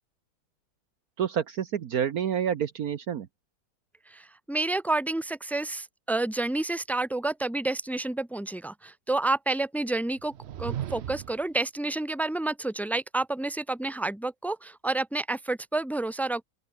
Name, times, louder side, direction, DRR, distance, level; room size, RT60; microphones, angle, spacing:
voice 1, 1.2-3.3, right 8 dB, 60° right, 1.3 m, -28 dB
voice 2, 4.1-10.3 10.6-16.4, right 2 dB, ahead, 1.6 m, -29 dB
sound 1, 10.2-11.5, right 11 dB, 90° right, 0.5 m, -36 dB
open air
omnidirectional pair, 1.9 m